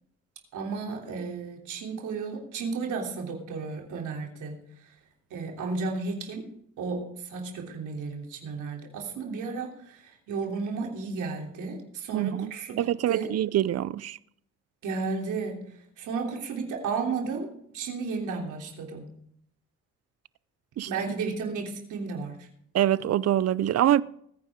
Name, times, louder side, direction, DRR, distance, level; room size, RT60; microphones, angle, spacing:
voice 1, 0.5-5.0 5.3-6.4 6.8-13.3 14.8-19.1 20.8-22.5, right 4 dB, 80° right, 3.2 m, -33 dB
voice 2, 12.1-12.5 12.8-14.2 20.8-20.9 22.7-24.0, right 12 dB, 55° right, 0.6 m, -24 dB
20.5 x 9.6 x 3.7 m
cardioid pair, 90°, 30 cm